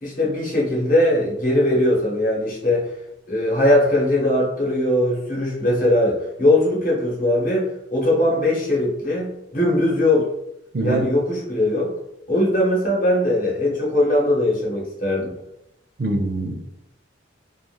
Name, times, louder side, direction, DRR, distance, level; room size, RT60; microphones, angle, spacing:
voice 1, 0.0-2.8 3.3-10.3 10.8-11.9 12.3-15.3, left 1 dB, 45° left, -3 dB, 1.0 m, -20 dB
voice 2, 10.7-11.1 16.0-16.6, right 1 dB, 55° right, 5 dB, 0.4 m, -24 dB
2.4 x 2.4 x 3.1 m, 0.80 s
head